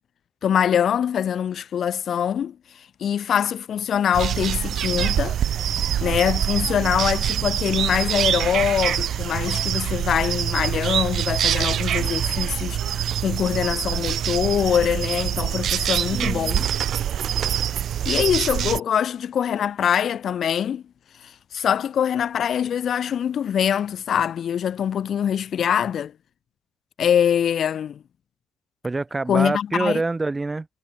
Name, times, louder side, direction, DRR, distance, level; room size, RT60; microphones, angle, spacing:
voice 1, 0.4-5.4 5.6-5.7 6.0-16.7 18.0-20.8 21.2-26.1 27.0-28.0 29.3-30.0, left 9 dB, 40° left, 1.5 m, -23 dB
sound 1, 4.1-18.8, right 10 dB, 45° right, 0.9 m, -25 dB
voice 2, 16.1-16.5 28.8-30.7, right 3 dB, 15° right, 1.3 m, -26 dB
cardioid pair, 130°, 0 cm